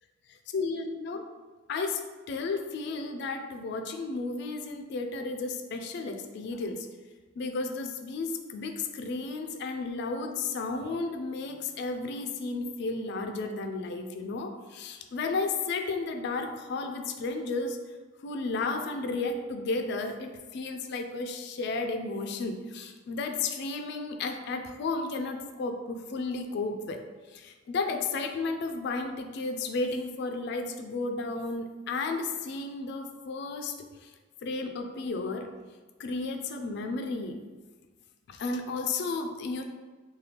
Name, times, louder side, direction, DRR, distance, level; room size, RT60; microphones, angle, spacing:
voice 1, 0.5-1.2 1.7-2.0 2.3-6.9 7.4-17.8 18.2-27.0 27.3-33.7 34.0-34.1 34.4-35.5 36.0-37.4 38.3-39.6, left 3 dB, 60° left, 6 dB, 0.3 m, -33 dB
3.3 x 2.2 x 2.8 m, 1.3 s
head